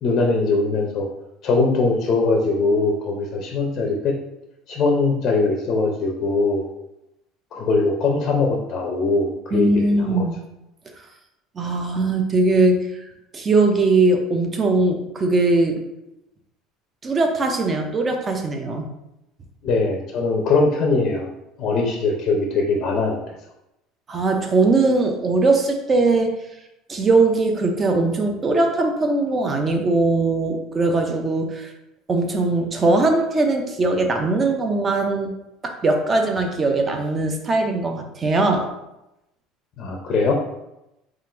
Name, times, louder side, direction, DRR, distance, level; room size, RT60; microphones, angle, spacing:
voice 1, 0.0-1.1 1.4-4.2 4.7-6.6 7.5-10.2 19.6-21.3 21.6-23.2 39.8-40.3, left 3 dB, 35° left, 1 dB, 0.6 m, -21 dB
voice 2, 9.5-10.3 11.6-12.9 13.3-15.8 17.0-18.8 24.1-26.3 26.9-31.7 32.1-35.3 35.6-38.7, right 2 dB, 20° right, 4 dB, 0.5 m, -20 dB
3.8 x 2.5 x 4.3 m, 0.90 s
cardioid pair, 165°, 0 cm